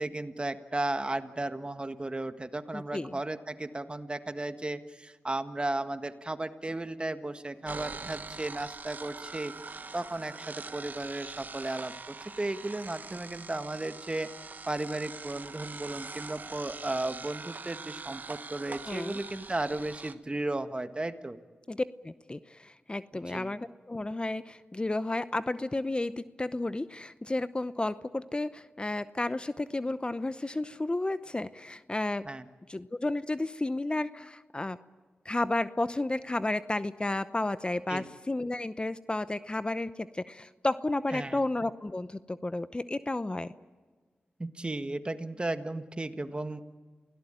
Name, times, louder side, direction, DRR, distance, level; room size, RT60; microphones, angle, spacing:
voice 1, 0.0-11.9 12.4-21.4 23.3-23.5 32.2-32.5 37.9-38.0 41.1-41.5 44.4-46.6, right 2 dB, 30° right, 10 dB, 1.6 m, -35 dB
voice 2, 2.7-3.2 18.9-19.2 21.7-32.2 32.7-34.8 35.2-43.5, left 2 dB, 25° left, 14 dB, 0.8 m, -32 dB
sound 1, 7.7-20.1, right 4 dB, 55° right, 1.3 m, -43 dB
28.5 x 17.5 x 9.0 m, 1.4 s
cardioid pair, 40°, 4 cm